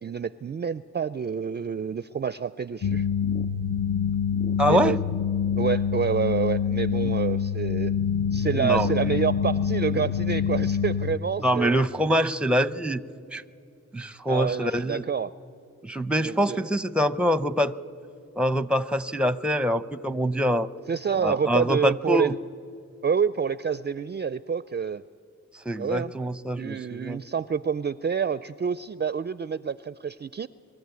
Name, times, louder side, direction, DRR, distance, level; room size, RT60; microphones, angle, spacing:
voice 1, 0.0-3.1 4.6-5.0 5.6-7.9 8.3-11.9 14.3-15.3 16.2-16.7 20.9-22.4 23.0-25.0 25.8-26.1 26.6-30.5, right 6 dB, 35° right, 17 dB, 0.4 m, -28 dB
sound 1, 2.8-11.2, left 7 dB, 45° left, 0.7 m, -26 dB
voice 2, 4.6-5.0 7.0-7.1 8.5-8.9 11.4-13.0 13.3-13.4 13.9-15.0 15.8-17.7 18.3-20.7 21.2-22.3 25.6-27.2, equal, 5° right, 16 dB, 0.7 m, -24 dB
23.5 x 13.5 x 9.6 m, 2.5 s
cardioid pair, 55°, 31 cm